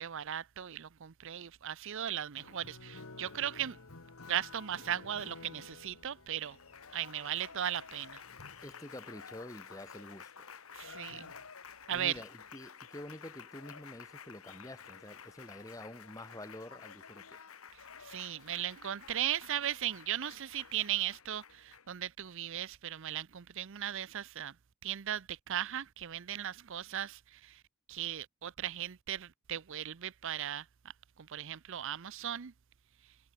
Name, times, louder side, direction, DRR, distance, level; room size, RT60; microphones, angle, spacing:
voice 1, 0.0-3.8 4.3-6.6 6.9-8.2 10.7-11.3 11.9-12.2 17.7-24.5 24.8-27.6 27.9-30.7 31.2-32.5, right 11 dB, 65° right, 0.6 m, -37 dB
Applause, 2.4-22.0, left 5 dB, 85° left, 1.7 m, -51 dB
voice 2, 8.6-10.5 11.9-17.4, left 1 dB, 15° left, 7.6 m, -48 dB
head